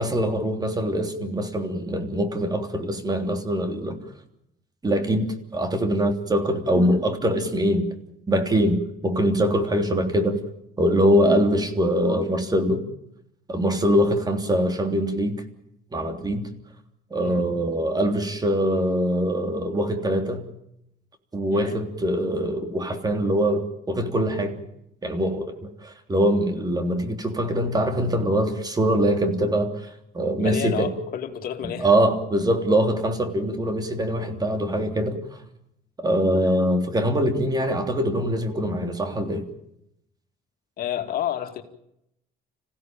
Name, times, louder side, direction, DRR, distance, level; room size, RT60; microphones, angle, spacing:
voice 1, 0.0-4.0 4.8-7.9 8.3-10.4 10.8-12.8 13.5-15.4 15.9-16.5 17.1-20.4 21.3-24.6 25.0-25.6 25.8-29.9 30.1-30.9 31.8-35.2 36.0-39.5, equal, 25° right, 6 dB, 3.3 m, -23 dB
voice 2, 30.4-31.9 40.8-41.6, left 10 dB, 60° left, 6 dB, 2.6 m, -30 dB
26.5 x 16.5 x 9.0 m, 0.80 s
cardioid pair, 110°, 17 cm